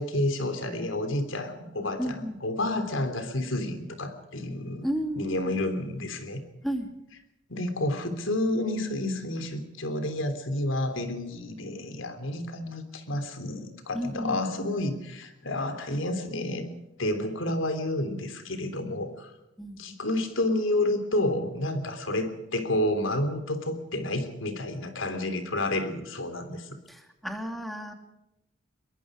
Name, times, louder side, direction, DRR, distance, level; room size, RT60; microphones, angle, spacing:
voice 1, 0.0-4.9 5.2-6.4 7.5-16.7 17.0-19.3 19.8-26.8, left 1 dB, 90° left, 9 dB, 3.3 m, -30 dB
voice 2, 2.0-2.4 4.8-5.6 6.6-6.9 13.9-14.4 19.6-19.8 26.9-27.9, equal, ahead, 5 dB, 2.6 m, -32 dB
23.0 x 22.5 x 5.1 m, 0.90 s
head